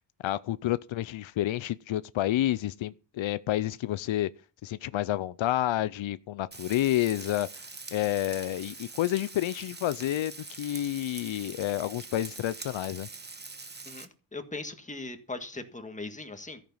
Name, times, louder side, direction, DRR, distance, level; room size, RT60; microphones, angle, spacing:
voice 1, 0.2-4.3 4.6-7.5 7.9-13.1, left 14 dB, 90° left, 0.6 m, -29 dB
Frying (food), 6.5-14.0, right 3 dB, 20° right, 1.1 m, -44 dB
voice 2, 13.9-16.6, left 2 dB, 15° left, 1.8 m, -39 dB
14.0 x 9.1 x 5.5 m
wide cardioid pair, 135°, 45 cm